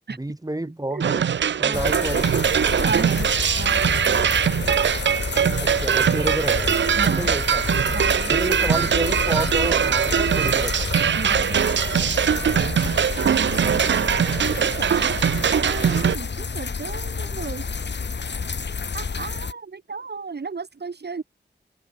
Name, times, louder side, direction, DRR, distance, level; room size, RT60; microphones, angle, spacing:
voice 1, 0.1-1.3 1.6-2.3 5.6-6.8 7.1-7.7 8.3-10.9 14.2-14.7, right 1 dB, 20° right, 6.4 m, -30 dB
sound 1, 1.0-16.2, right 8 dB, 90° right, 0.5 m, -21 dB
sound 2, 1.7-19.5, left 5 dB, 75° left, 2.3 m, -29 dB
voice 2, 2.7-3.3 3.6-3.8 6.9-7.3 7.9-8.3 11.1-11.5 14.4-17.6 18.9-21.2, right 4 dB, 65° right, 2.5 m, -33 dB
wide cardioid pair, 85°, 18 cm